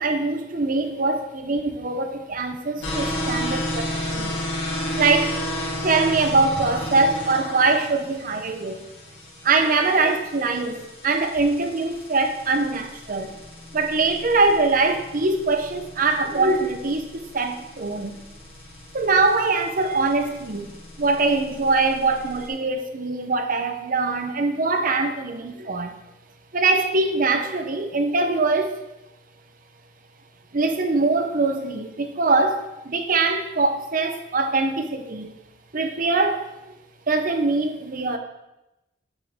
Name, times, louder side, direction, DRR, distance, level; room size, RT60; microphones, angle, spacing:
voice 1, 0.0-4.3 4.9-5.3 5.8-8.9 9.4-13.3 13.7-18.2 18.9-20.7 21.0-25.9 26.5-28.7 30.5-35.3 35.7-36.5 37.1-38.2, right 3 dB, 45° right, 6 dB, 0.8 m, -23 dB
sound 1, 2.8-22.5, left 1 dB, 70° left, 3.2 m, -33 dB
10.0 x 7.5 x 3.6 m, 0.96 s
head